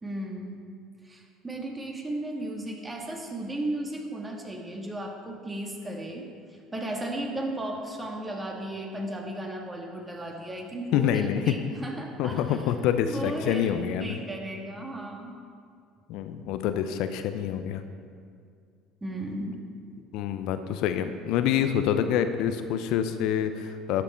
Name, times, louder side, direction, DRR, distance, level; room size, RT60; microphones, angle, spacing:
voice 1, 0.0-0.6 1.0-6.3 6.7-12.6 13.0-15.4 19.0-19.6, right 1 dB, 20° right, 1 dB, 2.0 m, -35 dB
voice 2, 10.9-11.5 12.2-14.2 16.1-17.8 20.1-24.0, left 9 dB, 65° left, 9 dB, 0.6 m, -27 dB
12.0 x 8.4 x 4.4 m, 2.3 s
hypercardioid pair, 65°, 0 cm